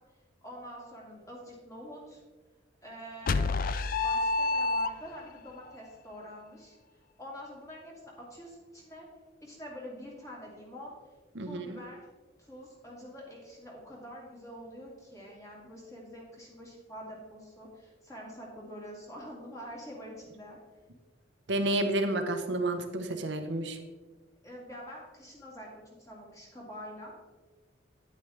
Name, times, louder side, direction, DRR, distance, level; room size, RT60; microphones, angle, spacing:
voice 1, 0.4-2.2 2.8-3.6 4.0-6.8 7.2-9.1 9.4-11.0 11.4-12.1 12.4-20.6 24.4-27.2, equal, 15° left, -3 dB, 2.3 m, -46 dB
sound 1, 3.3-5.4, left 3 dB, 45° left, 0.4 m, -28 dB
voice 2, 11.4-11.8 21.5-23.8, right 1 dB, 65° right, 5 dB, 0.8 m, -30 dB
9.7 x 8.3 x 3.5 m, 1.3 s
head